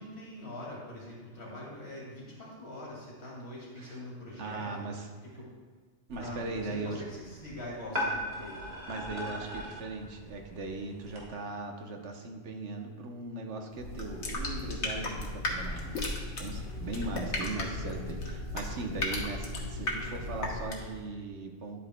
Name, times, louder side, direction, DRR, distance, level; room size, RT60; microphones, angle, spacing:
voice 1, 0.0-4.9 5.2-5.5 6.2-8.6 18.7-18.9, left 1 dB, 65° left, -5 dB, 2.5 m, -43 dB
voice 2, 4.4-5.1 6.1-7.0 8.9-15.9 16.4-21.8, right 3 dB, 85° right, 3 dB, 1.2 m, -39 dB
sound 1, 6.1-11.2, equal, 65° right, 1.9 m, -39 dB
sound 2, 13.7-21.0, left 2 dB, 85° left, 1.4 m, -35 dB
10.5 x 8.4 x 2.2 m, 1.4 s
omnidirectional pair, 1.2 m